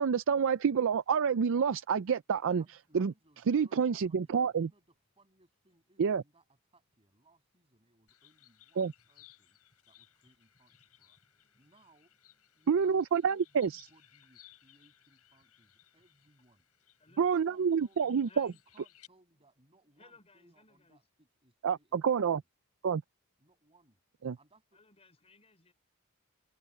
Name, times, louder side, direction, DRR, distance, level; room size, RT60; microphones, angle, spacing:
voice 1, 0.0-2.6 2.9-3.1 3.5-4.7 6.0-6.2 8.8-8.9 12.7-13.8 17.2-18.5 21.6-22.4 22.8-23.0 24.2-24.4, right 6 dB, 60° right, 0.4 m, -28 dB
voice 2, 2.6-9.6 9.9-12.1 12.5-16.7 17.1-18.2 18.5-22.4 23.4-24.0 24.3-24.8, right 2 dB, 25° right, 7.6 m, -67 dB
sound 1, 8.1-19.1, left 13 dB, 80° left, 6.8 m, -63 dB
voice 3, 11.2-11.7 12.6-12.7 17.0-17.3 17.9-18.0 18.3-18.6 20.0-21.0 24.7-25.7, left 3 dB, 30° left, 4.1 m, -61 dB
head